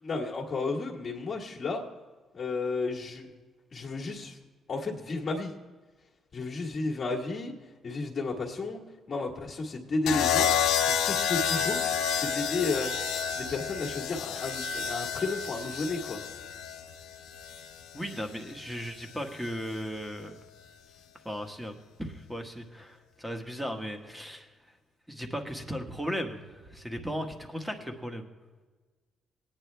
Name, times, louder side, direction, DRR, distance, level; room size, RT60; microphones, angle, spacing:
voice 1, 0.0-1.8 2.3-3.3 3.7-4.4 4.7-5.5 6.3-7.5 7.8-8.8 9.1-10.5 11.0-11.8 12.2-12.9 13.3-16.2, left 3 dB, 45° left, -2 dB, 1.6 m, -32 dB
sound 1, 10.1-18.2 19.4-19.8, left 8 dB, 90° left, 0.7 m, -30 dB
voice 2, 17.9-20.4 21.2-24.5 25.1-28.3, equal, 5° right, 5 dB, 1.5 m, -36 dB
18.5 x 9.3 x 3.4 m, 1.3 s
cardioid pair, 90°, 0 cm